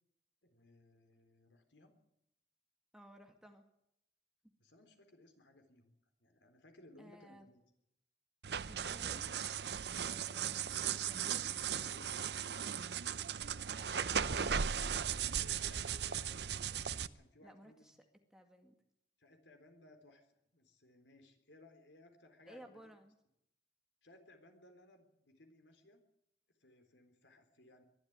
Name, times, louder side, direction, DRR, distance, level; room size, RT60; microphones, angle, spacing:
voice 1, 0.4-2.0 4.6-5.9 6.2-7.6 9.9-11.3 11.7-12.8 13.9-16.4 16.9-17.9 19.2-22.8 24.0-26.0 26.6-27.8, left 1 dB, 85° left, 6 dB, 3.8 m, -62 dB
voice 2, 2.9-3.7 7.0-7.5 8.7-9.3 10.0-11.4 13.7-14.3 17.4-18.0 18.3-18.7 22.4-23.1, equal, 5° right, 4 dB, 2.1 m, -57 dB
sound 1, 8.4-17.1, right 8 dB, 70° right, 0.7 m, -37 dB
22.0 x 12.5 x 9.5 m, 0.78 s
head